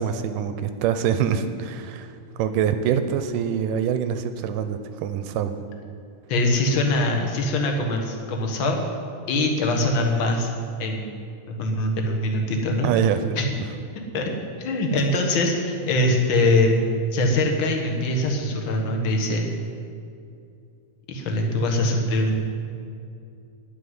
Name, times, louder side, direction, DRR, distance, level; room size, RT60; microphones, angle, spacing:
voice 1, 0.0-5.5 12.8-13.4, right 8 dB, 80° right, 10 dB, 2.1 m, -25 dB
voice 2, 6.3-8.8 9.3-10.5 10.8-11.2 11.5-12.9 13.4-13.5 14.1-14.3 14.6-16.8 17.1-19.5 21.1-22.4, left 2 dB, 50° left, 1 dB, 1.5 m, -22 dB
11.0 x 6.9 x 9.4 m, 2.5 s
omnidirectional pair, 4.0 m